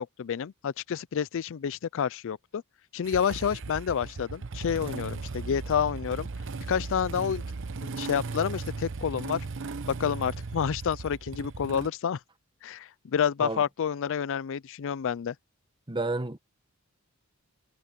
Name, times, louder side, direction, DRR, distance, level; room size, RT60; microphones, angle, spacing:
voice 1, 0.0-2.6 2.9-6.3 6.7-7.4 7.8-9.5 9.9-12.2 12.6-15.3, left 7 dB, 65° left, 0.4 m, -29 dB
Motorcycle / Engine starting, 3.0-11.9, right 4 dB, 60° right, 0.8 m, -37 dB
voice 2, 15.9-16.4, right 2 dB, 20° right, 1.2 m, -30 dB
head